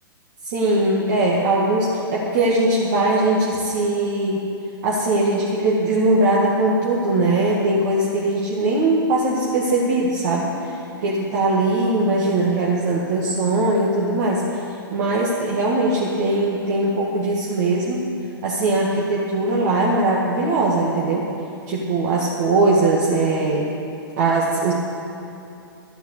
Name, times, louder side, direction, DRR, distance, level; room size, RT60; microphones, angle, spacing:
voice 1, 0.4-4.4 4.8-14.6 14.9-18.1 18.4-21.3 21.7-23.7 24.2-24.7, right 2 dB, 50° right, -4 dB, 1.9 m, -20 dB
12.0 x 7.9 x 8.3 m, 2.7 s
hypercardioid pair, 120°, 12 cm